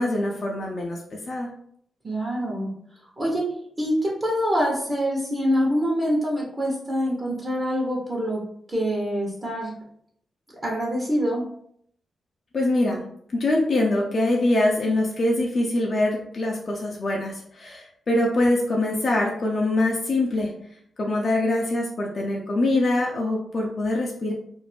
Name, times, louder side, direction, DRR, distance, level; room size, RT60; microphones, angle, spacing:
voice 1, 0.0-1.5 12.5-13.0 13.3-20.5 21.0-24.3, left 1 dB, 55° left, -2 dB, 0.5 m, -24 dB
voice 2, 2.0-2.7 3.2-8.4 8.7-9.7 10.6-11.4, equal, 35° right, -3 dB, 0.9 m, -25 dB
2.5 x 2.0 x 3.2 m, 0.68 s
supercardioid pair, 45°, 0 cm